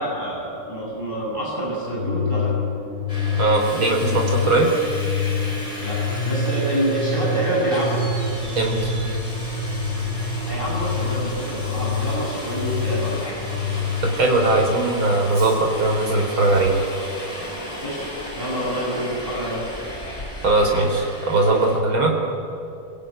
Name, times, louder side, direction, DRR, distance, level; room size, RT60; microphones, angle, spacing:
voice 1, 0.0-2.6 5.8-8.0 10.5-13.4 17.8-18.0 18.4-19.6, right 1 dB, 25° right, -5 dB, 6.9 m, -27 dB
sound 1, 1.9-14.7, left 4 dB, 60° right, 3.6 m, -26 dB
Subway metro underground, 3.1-21.8, equal, 15° left, 5.6 m, -35 dB
voice 2, 3.4-4.7 8.5-8.7 14.0-16.8 20.4-22.1, right 2 dB, 75° right, 2 dB, 5.1 m, -19 dB
25.5 x 23.0 x 9.2 m, 2.5 s
omnidirectional pair, 2.2 m